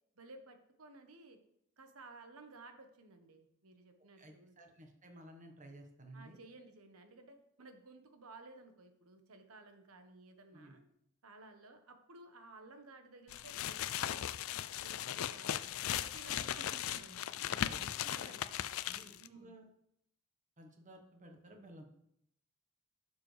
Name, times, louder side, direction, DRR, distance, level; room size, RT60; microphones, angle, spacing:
voice 1, 0.2-1.4 1.8-4.5 6.1-10.8 11.2-14.2 14.8-15.6 15.9-17.3 18.0-18.4 19.1-19.5, right 2 dB, 85° right, 6 dB, 1.2 m, -56 dB
voice 2, 4.2-6.4 10.5-10.7 17.7-18.4 18.8-19.7 20.6-21.8, right 1 dB, 35° right, 4 dB, 1.4 m, -55 dB
sound 1, 13.3-19.3, left 11 dB, 70° left, 0.4 m, -38 dB
11.0 x 6.8 x 3.4 m, 0.74 s
head